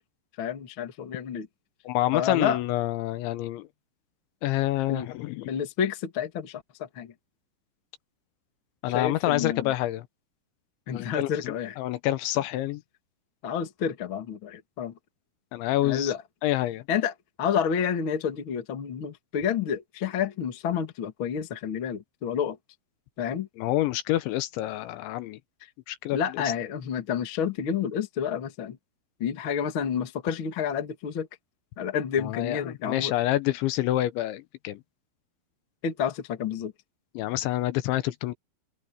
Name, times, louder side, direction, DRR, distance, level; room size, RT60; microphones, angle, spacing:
voice 1, 0.4-1.5 2.1-2.6 4.9-5.1 5.5-7.1 8.8-9.7 10.9-11.8 12.3-12.4 13.4-14.9 15.8-16.2 16.9-22.6 23.2-23.5 26.1-28.8 29.2-31.3 31.8-33.2 35.8-36.7, left 8 dB, 60° left, 1.3 m, -29 dB
voice 2, 1.9-3.7 4.4-5.5 8.8-10.1 10.9-12.8 15.5-16.1 16.4-16.8 23.6-25.4 25.9-26.4 32.2-32.6 32.9-34.8 37.2-38.3, left 15 dB, 75° left, 3.1 m, -27 dB
omnidirectional pair, 5.7 m